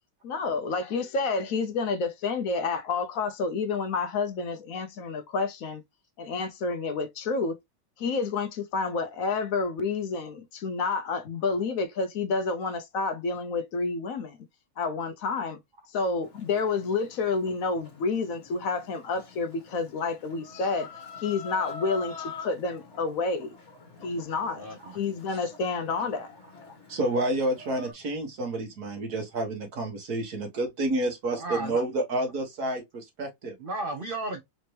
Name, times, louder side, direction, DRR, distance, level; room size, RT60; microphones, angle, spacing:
voice 1, 0.2-5.8 6.2-7.6 8.0-14.4 14.8-15.6 15.9-20.9 21.2-23.6 24.0-24.7 24.9-26.3, left 4 dB, 65° left, 1.0 m, -29 dB
Chicken rooster, 16.2-27.9, left 4 dB, 45° left, 1.6 m, -45 dB
voice 2, 24.6-25.0 31.4-31.8 33.6-34.4, right 2 dB, 50° right, 0.7 m, -34 dB
voice 3, 26.9-33.5, right 2 dB, 70° right, 1.8 m, -29 dB
4.3 x 2.8 x 3.1 m
omnidirectional pair, 1.7 m